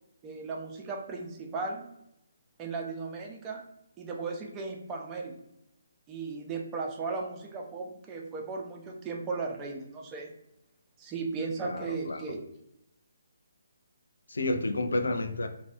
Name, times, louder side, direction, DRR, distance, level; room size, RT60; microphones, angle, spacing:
voice 1, 0.2-1.9 2.6-3.6 4.0-5.4 6.1-10.3 11.0-12.5, right 4 dB, 20° right, 0 dB, 0.4 m, -36 dB
voice 2, 11.6-12.2 14.3-15.5, left 2 dB, 85° left, 7 dB, 0.3 m, -30 dB
2.2 x 2.1 x 2.6 m, 0.81 s
hypercardioid pair, 155°, 0 cm